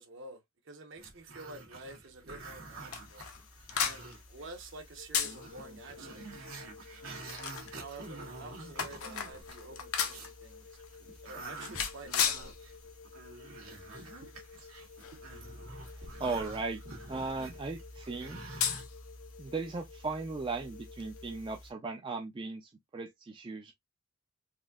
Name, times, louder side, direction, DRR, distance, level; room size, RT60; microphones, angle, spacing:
voice 1, 0.0-3.3 3.8-6.5 6.9-7.1 7.7-10.7 11.2-12.5 14.2-14.3, right 2 dB, 60° right, 0.9 m, -49 dB
Growling, 1.0-4.5 4.8-4.9 5.2-10.4 10.8-18.8, right 3 dB, 90° right, 1.5 m, -48 dB
sound 1, 2.4-21.7, left 7 dB, 85° left, 0.8 m, -40 dB
sound 2, 5.0-21.5, left 5 dB, 60° left, 0.4 m, -54 dB
voice 2, 16.0-16.8 17.1-18.4 19.4-23.7, right 3 dB, 25° right, 0.4 m, -37 dB
4.1 x 2.7 x 2.3 m
head